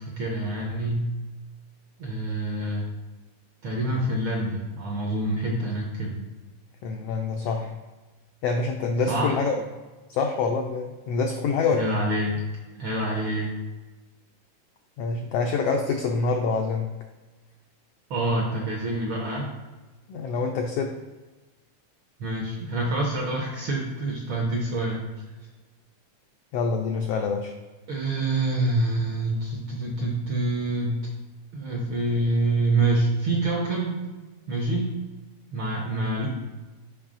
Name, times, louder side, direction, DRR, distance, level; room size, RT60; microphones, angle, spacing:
voice 1, 0.0-1.1 2.0-2.9 3.6-6.2 9.1-9.4 11.7-12.4 12.7-13.5 18.1-19.5 22.2-25.0 27.9-31.0 31.5-34.0 34.5-34.9 35.5-36.3, right 2 dB, 70° right, -2 dB, 1.2 m, -26 dB
voice 2, 6.8-7.7 8.4-9.5 10.1-12.0 15.0-16.9 20.1-20.9 26.5-27.5, left 4 dB, 85° left, 3 dB, 1.3 m, -26 dB
7.1 x 5.4 x 2.5 m, 1.2 s
omnidirectional pair, 3.3 m